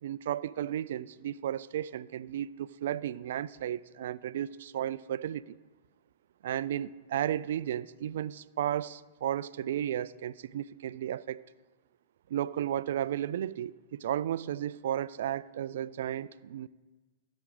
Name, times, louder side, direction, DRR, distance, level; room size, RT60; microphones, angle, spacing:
voice 1, 0.0-5.6 6.4-11.4 12.3-16.7, right 11 dB, 70° right, 0.3 m, -34 dB
17.5 x 6.1 x 3.8 m
hypercardioid pair, 115°, 0 cm